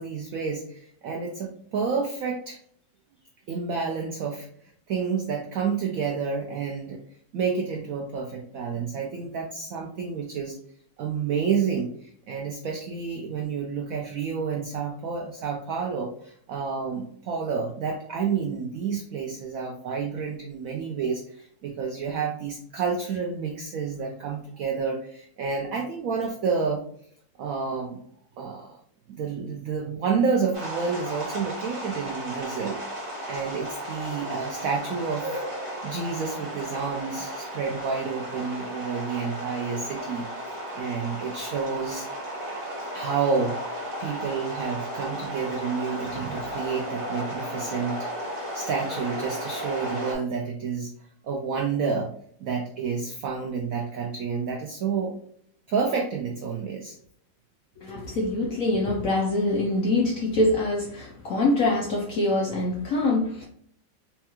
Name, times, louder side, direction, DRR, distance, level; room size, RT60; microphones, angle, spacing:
voice 1, 0.0-2.6 3.5-4.5 4.9-7.0 7.3-10.6 11.0-26.8 27.4-28.0 28.4-28.8 29.1-35.4 35.8-42.1 42.9-43.7 44.0-48.2 48.5-55.2 55.7-57.0, right 5 dB, 85° right, 1 dB, 0.7 m, -29 dB
sound 1, 30.5-50.1, equal, 20° right, 0.9 m, -34 dB
voice 2, 57.8-63.5, left 2 dB, 70° left, -2 dB, 0.8 m, -24 dB
4.2 x 2.3 x 2.9 m, 0.64 s
omnidirectional pair, 2.0 m